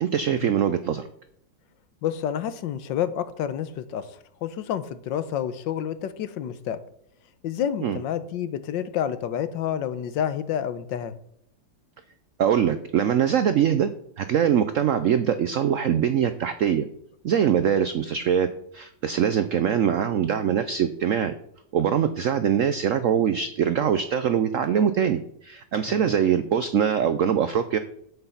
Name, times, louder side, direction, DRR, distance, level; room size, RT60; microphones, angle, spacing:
voice 1, 0.0-1.0 7.8-8.0 12.4-13.9 14.2-16.9 17.2-21.3 21.7-27.8, right 8 dB, 80° right, 11 dB, 0.7 m, -23 dB
voice 2, 2.0-6.8 7.4-11.1 25.9-26.2, left 9 dB, 80° left, 12 dB, 1.5 m, -29 dB
8.0 x 7.6 x 5.7 m, 0.74 s
omnidirectional pair, 2.0 m